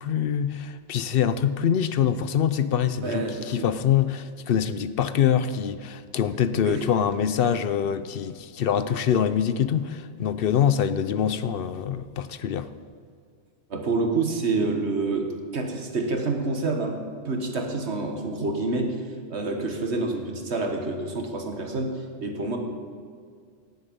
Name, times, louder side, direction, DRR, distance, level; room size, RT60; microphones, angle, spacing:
voice 1, 0.0-12.7, left 8 dB, 60° left, 0.7 m, -24 dB
voice 2, 3.0-3.7 6.6-6.9 13.7-17.0 17.2-19.0 19.3-21.9 22.2-22.6, right 3 dB, 65° right, 1.7 m, -27 dB
18.0 x 7.8 x 5.3 m
omnidirectional pair, 1.2 m